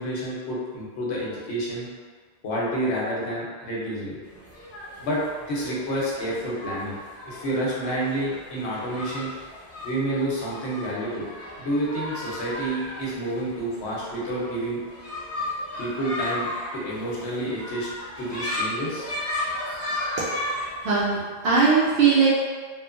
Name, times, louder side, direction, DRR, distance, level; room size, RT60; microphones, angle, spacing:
voice 1, 0.0-1.9 2.4-4.2 5.0-5.2 5.5-7.0 7.2-9.3 9.8-11.3 11.6-14.8 15.8-17.9 18.2-19.1, right 1 dB, 85° left, -5 dB, 1.0 m, -29 dB
sound 1, 4.3-21.2, left 1 dB, 20° left, 0.5 m, -35 dB
voice 2, 20.8-22.3, right 5 dB, 75° right, -8 dB, 0.8 m, -19 dB
3.0 x 2.1 x 2.4 m, 1.5 s
omnidirectional pair, 1.1 m